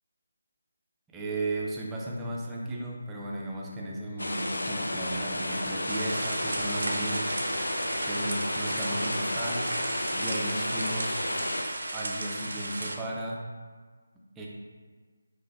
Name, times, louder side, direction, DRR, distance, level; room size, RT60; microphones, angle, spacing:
voice 1, 1.1-7.3 8.0-9.7 10.1-11.2 11.9-13.4 14.4-14.5, right 1 dB, 10° right, -3 dB, 0.4 m, -35 dB
sound 1, 4.2-11.6, left 1 dB, 85° left, 0.4 m, -32 dB
sound 2, 5.9-13.0, right 2 dB, 70° right, 0.5 m, -35 dB
5.6 x 2.6 x 2.2 m, 1.5 s
figure-of-eight pair, 160°, 0 cm